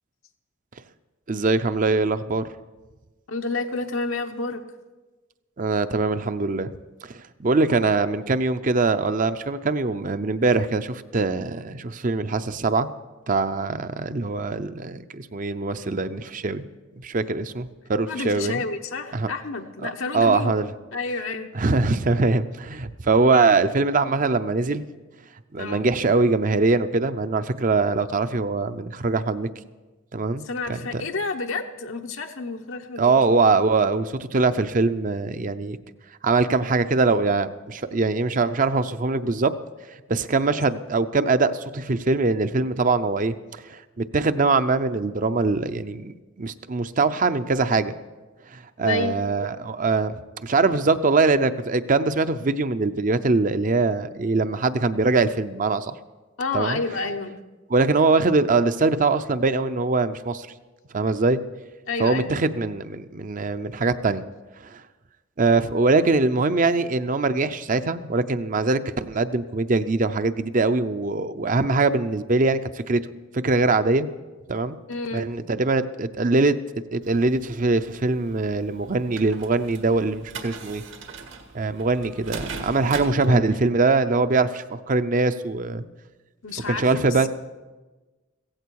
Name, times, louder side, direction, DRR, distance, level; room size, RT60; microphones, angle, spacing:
voice 1, 1.3-2.4 5.6-6.7 7.0-12.9 13.3-16.6 17.0-18.6 19.1-19.3 19.8-20.7 21.5-24.9 25.5-29.5 30.1-30.4 30.7-31.0 33.0-35.8 36.2-39.5 40.1-47.9 48.5-55.9 56.5-56.8 57.7-60.5 60.9-61.4 62.0-64.2 64.6-64.8 65.4-72.6 72.9-73.0 73.3-74.1 74.5-74.8 75.1-76.6 76.9-80.8 81.5-85.8 86.7-87.3, right 3 dB, 40° right, 11 dB, 0.6 m, -22 dB
voice 2, 3.3-4.6 18.1-20.6 20.9-21.5 25.6-25.9 30.4-33.1 48.8-49.2 56.4-57.4 61.9-62.3 74.9-75.3 83.3-83.6 86.4-87.3, left 3 dB, 80° left, 4 dB, 0.9 m, -30 dB
sound 1, 77.0-83.3, right 4 dB, 75° right, 1.7 m, -40 dB
16.0 x 15.5 x 4.7 m, 1.2 s
head